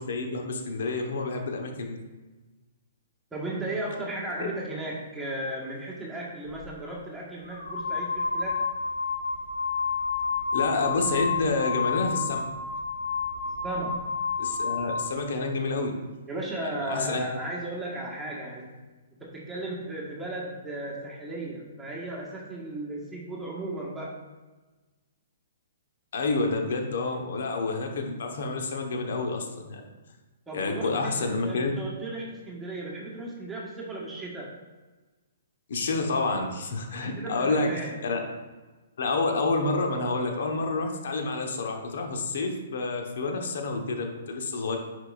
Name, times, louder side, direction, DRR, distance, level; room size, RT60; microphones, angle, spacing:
voice 1, 0.0-2.0 4.4-4.5 10.5-12.4 14.4-15.9 16.6-17.2 26.1-29.8 30.5-31.7 35.7-37.7 38.0-38.2 39.0-44.8, left 3 dB, 60° left, 3 dB, 1.2 m, -28 dB
voice 2, 3.3-8.6 13.6-14.1 16.3-18.7 19.2-24.2 30.5-34.5 37.2-38.1, right 2 dB, 10° right, -4 dB, 1.6 m, -35 dB
sound 1, 6.5-6.6 7.4-15.2, left 5 dB, 85° left, 1.2 m, -30 dB
9.6 x 5.2 x 2.6 m, 1.2 s
figure-of-eight pair, 120°, 0 cm